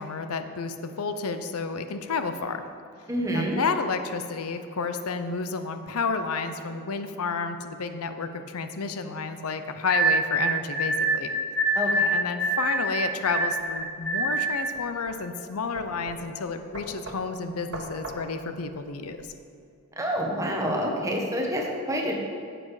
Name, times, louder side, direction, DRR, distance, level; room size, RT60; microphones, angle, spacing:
voice 1, 0.0-2.6 3.3-11.3 12.1-19.3, left 4 dB, 80° left, 9 dB, 0.6 m, -31 dB
voice 2, 3.1-3.6 11.7-12.1 20.0-22.2, equal, 15° right, 0 dB, 1.1 m, -27 dB
sound 1, 9.9-14.8, right 2 dB, 5° left, 0.9 m, -25 dB
sound 2, 13.6-19.3, right 2 dB, 55° right, 1.3 m, -42 dB
9.5 x 7.7 x 4.9 m, 2.4 s
head